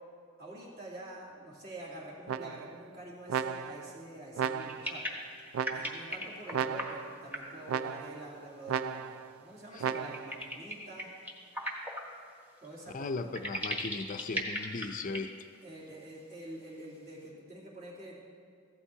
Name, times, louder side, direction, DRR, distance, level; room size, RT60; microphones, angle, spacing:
voice 1, 0.4-5.1 5.7-11.1 12.6-13.4 15.6-18.2, right 1 dB, 45° right, -5 dB, 2.9 m, -46 dB
sound 1, 2.3-2.8 3.3-3.9 4.4-5.0 5.5-6.1 6.5-7.2 7.7-8.3 8.7-9.3 9.8-10.4, right 7 dB, 80° right, 0.3 m, -35 dB
sound 2, 4.6-6.9 7.3-7.6 9.8-12.0 12.6-12.7 13.3-15.2 15.5-15.6 15.9-16.0, equal, 10° right, 1.2 m, -38 dB
voice 2, 12.9-15.4, left 3 dB, 40° left, 9 dB, 0.5 m, -37 dB
15.5 x 12.5 x 2.8 m, 2.4 s
head